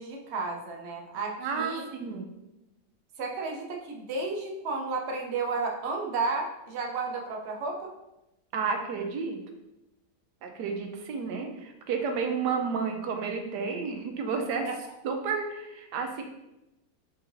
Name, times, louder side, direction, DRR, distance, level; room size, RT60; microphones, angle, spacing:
voice 1, 0.0-1.9 3.2-7.9 14.6-14.7, right 3 dB, 60° right, 1 dB, 0.7 m, -32 dB
voice 2, 1.4-2.3 8.5-9.4 10.4-14.7 15.0-16.2, right 5 dB, 90° right, 4 dB, 1.3 m, -31 dB
4.3 x 3.7 x 2.6 m, 0.92 s
omnidirectional pair, 1.8 m